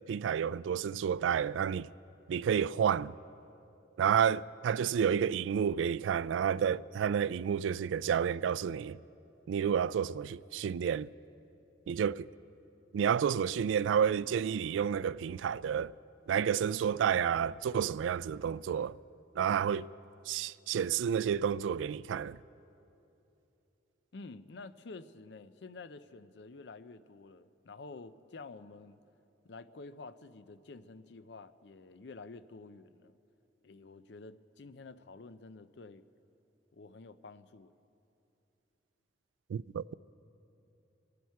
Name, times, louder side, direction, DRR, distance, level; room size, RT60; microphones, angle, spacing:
voice 1, 0.1-1.9 2.3-3.1 4.0-9.0 9.5-11.1 11.9-12.3 12.9-15.9 16.3-19.0 19.4-19.9 20.3-22.4 39.5-39.9, right 8 dB, 90° right, 0.3 m, -30 dB
voice 2, 24.1-29.0 29.4-33.2 33.6-36.0 36.7-37.7, left 3 dB, 65° left, 0.5 m, -49 dB
26.0 x 12.0 x 4.7 m
head